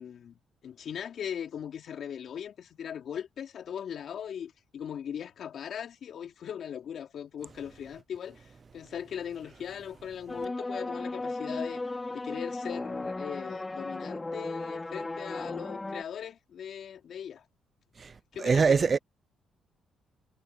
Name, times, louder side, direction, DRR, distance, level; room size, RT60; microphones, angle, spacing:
voice 1, 0.0-11.8 12.1-17.4 18.3-19.0, left 8 dB, 65° left, 3.5 m, -39 dB
sound 1, 10.3-16.0, left 2 dB, 20° left, 2.6 m, -36 dB
voice 2, 18.4-19.0, right 5 dB, 40° right, 0.3 m, -23 dB
cardioid pair, 90°, 0 cm